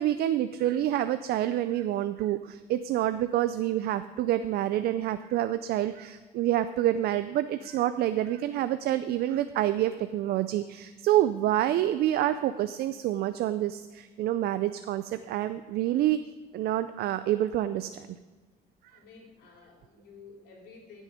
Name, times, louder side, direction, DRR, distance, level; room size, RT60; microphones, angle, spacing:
voice 1, 0.0-16.2 16.5-18.2, right 12 dB, 70° right, 11 dB, 0.5 m, -27 dB
voice 2, 18.9-21.0, left 4 dB, 75° left, -1 dB, 3.5 m, -51 dB
15.5 x 6.4 x 5.1 m, 1.4 s
cardioid pair, 110°, 17 cm